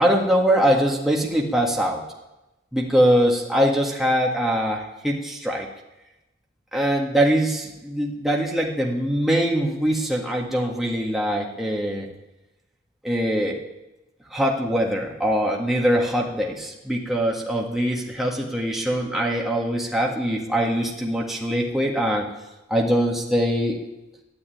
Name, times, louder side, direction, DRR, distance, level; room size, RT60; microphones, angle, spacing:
voice 1, 0.0-2.0 2.7-5.7 6.7-12.1 13.0-13.6 14.3-22.3 22.7-23.8, equal, ahead, -2 dB, 1.8 m, -22 dB
12.5 x 11.0 x 9.2 m, 0.99 s
head